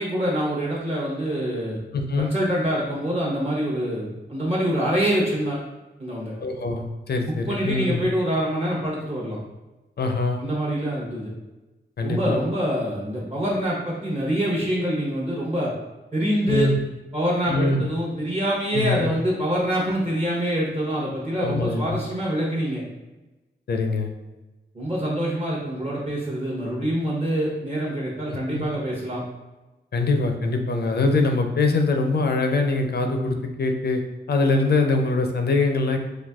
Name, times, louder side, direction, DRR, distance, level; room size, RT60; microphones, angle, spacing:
voice 1, 0.0-1.8 2.2-5.7 6.0-6.3 7.2-9.4 10.4-11.3 12.0-15.7 16.1-16.7 17.1-22.8 24.7-29.2, equal, 35° right, -4 dB, 0.8 m, -25 dB
voice 2, 1.9-2.3 6.4-8.0 10.0-10.4 12.0-12.4 16.5-16.8 17.5-17.9 18.7-19.1 21.4-21.9 23.7-24.1 28.3-28.6 29.9-34.0 34.3-36.0, left 3 dB, 60° left, 4 dB, 0.4 m, -23 dB
4.1 x 2.6 x 2.3 m, 1.1 s
wide cardioid pair, 100°, 19 cm